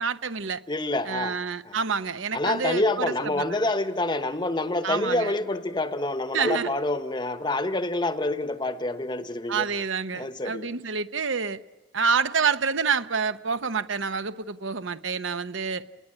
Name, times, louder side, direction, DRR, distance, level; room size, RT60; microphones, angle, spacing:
voice 1, 0.0-0.6 1.0-3.6 4.8-5.3 6.3-6.7 9.5-11.6 11.9-15.8, right 5 dB, 70° right, 0.8 m, -28 dB
voice 2, 0.7-1.4 1.6-1.7 2.3-9.7 10.1-10.7, left 2 dB, 20° left, 0.9 m, -27 dB
29.5 x 20.5 x 9.8 m
head